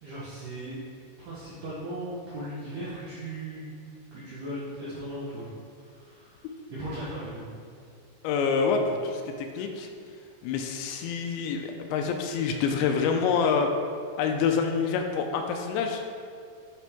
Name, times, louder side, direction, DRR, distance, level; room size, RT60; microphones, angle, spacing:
voice 1, 0.0-0.8 1.2-3.7 4.1-5.5 5.8-7.5, right 1 dB, 75° right, -9 dB, 1.8 m, -37 dB
voice 2, 8.2-9.9 10.4-13.7 14.2-16.0, left 5 dB, 85° left, 4 dB, 2.7 m, -27 dB
10.0 x 5.0 x 3.5 m, 2.2 s
omnidirectional pair, 5.3 m